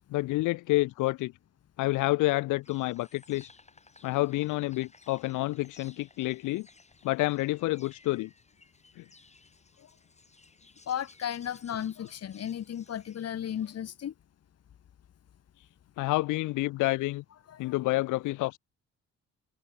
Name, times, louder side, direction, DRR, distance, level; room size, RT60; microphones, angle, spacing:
voice 1, 0.1-1.3 1.8-3.5 4.0-6.7 7.0-8.3 9.0-9.1 16.0-17.2 17.6-18.6, left 19 dB, 85° left, 0.5 m, -28 dB
Insect, 2.6-13.8, left 3 dB, 20° left, 6.3 m, -59 dB
voice 2, 10.9-14.1 17.5-17.7, left 9 dB, 55° left, 1.7 m, -35 dB
cardioid pair, 90°, 30 cm